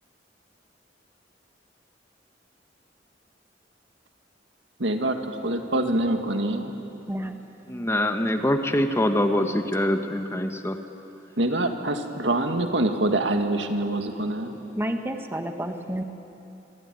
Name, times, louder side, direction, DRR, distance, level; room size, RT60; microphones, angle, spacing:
voice 1, 4.8-6.7 11.4-14.6, right 1 dB, 75° right, 5 dB, 2.1 m, -25 dB
voice 2, 7.7-10.8, left 1 dB, 15° left, 6 dB, 1.3 m, -24 dB
voice 3, 14.8-16.0, right 1 dB, 15° right, 5 dB, 1.3 m, -30 dB
27.0 x 22.0 x 9.4 m, 3.0 s
head